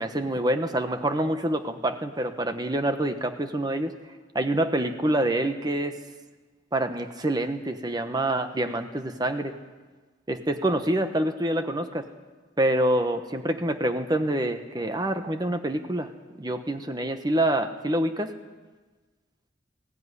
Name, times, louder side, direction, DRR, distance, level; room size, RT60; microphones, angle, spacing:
voice 1, 0.0-3.9 4.3-6.0 6.7-9.5 10.3-12.1 12.6-16.1 16.4-18.3, right 1 dB, 25° right, 7 dB, 1.1 m, -26 dB
21.0 x 16.5 x 9.8 m, 1.3 s
head